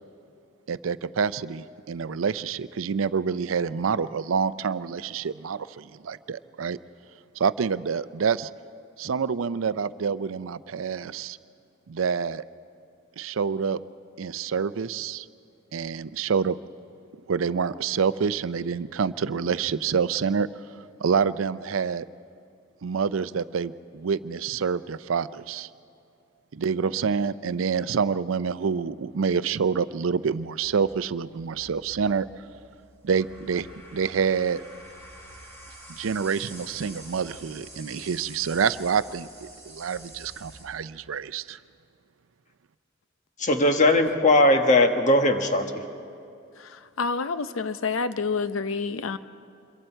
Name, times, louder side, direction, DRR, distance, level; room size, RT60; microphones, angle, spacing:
voice 1, 0.7-6.8 7.4-8.5 9.0-11.4 11.9-12.4 13.2-13.8 14.2-15.3 15.7-16.6 17.3-20.5 21.0-22.1 22.8-25.7 26.5-32.3 33.0-33.7 33.9-34.6 35.9-41.6, right 6 dB, 90° right, 15 dB, 0.5 m, -27 dB
sound 1, 30.6-40.7, right 1 dB, 15° left, 6.0 m, -47 dB
voice 2, 43.4-45.7, left 2 dB, 40° left, 5 dB, 1.4 m, -19 dB
voice 3, 46.6-49.2, left 4 dB, 85° left, 12 dB, 0.6 m, -28 dB
26.0 x 22.5 x 4.5 m, 2.5 s
head